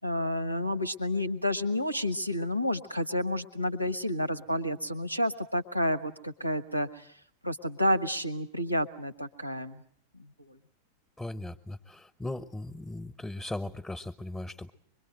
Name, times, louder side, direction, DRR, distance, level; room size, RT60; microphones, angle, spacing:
voice 1, 0.0-7.0 7.4-9.8 10.2-10.6, left 1 dB, 90° left, 15 dB, 1.2 m, -30 dB
voice 2, 11.2-14.7, left 2 dB, 10° left, 9 dB, 1.0 m, -38 dB
25.0 x 22.5 x 8.0 m, 0.62 s
figure-of-eight pair, 90°, 0 cm